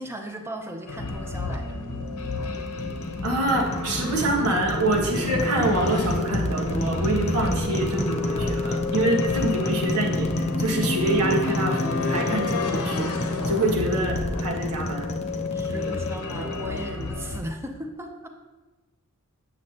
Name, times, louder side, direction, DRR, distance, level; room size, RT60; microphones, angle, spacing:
voice 1, 0.0-1.8 15.5-18.3, right 1 dB, 10° right, 3 dB, 0.7 m, -37 dB
sound 1, 0.9-17.4, left 3 dB, 90° left, 0.9 m, -30 dB
sound 2, 2.1-17.3, left 1 dB, 30° left, 0.6 m, -31 dB
voice 2, 3.2-15.1 15.7-15.9, right 1 dB, 85° right, -2 dB, 1.5 m, -26 dB
8.0 x 7.4 x 2.9 m, 1.2 s
head